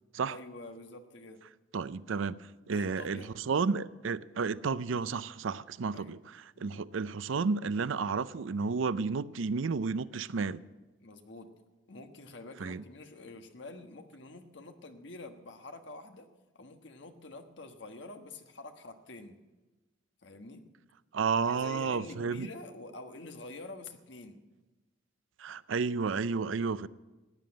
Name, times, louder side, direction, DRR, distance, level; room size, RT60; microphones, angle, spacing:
voice 1, 0.3-1.4 2.7-3.4 5.9-6.2 6.5-6.8 11.0-11.6 11.9-16.3 16.5-19.4 20.2-20.7 21.5-24.5, left 2 dB, 65° left, 1.3 m, -47 dB
voice 2, 1.7-2.4 2.7-6.2 6.6-10.6 12.6-12.8 21.1-22.5 25.4-26.9, right 5 dB, 85° right, 0.5 m, -31 dB
15.5 x 9.4 x 8.7 m
head